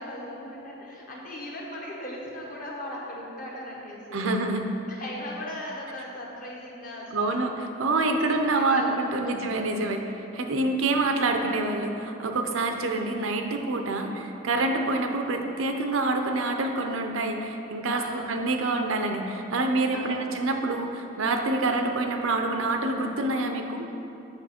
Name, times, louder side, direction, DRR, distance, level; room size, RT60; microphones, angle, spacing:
voice 1, 0.0-4.4 4.9-7.5 8.6-9.4 17.9-18.4 19.9-20.3, left 1 dB, 40° left, -3 dB, 1.2 m, -38 dB
voice 2, 4.1-4.6 7.1-10.0 10.3-23.8, right 2 dB, 80° right, 4 dB, 0.6 m, -26 dB
7.9 x 5.6 x 4.3 m, 2.9 s
head